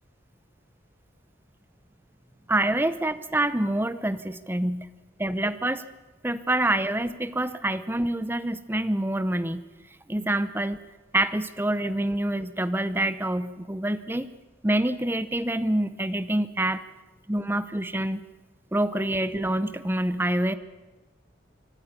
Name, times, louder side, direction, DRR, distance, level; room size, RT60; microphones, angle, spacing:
voice 1, 2.5-4.9 5.2-5.8 6.2-9.6 10.1-10.8 11.1-14.3 14.6-16.8 17.3-18.2 18.7-20.5, right 1 dB, 10° right, 13 dB, 0.8 m, -26 dB
25.0 x 11.5 x 9.8 m, 1.2 s
head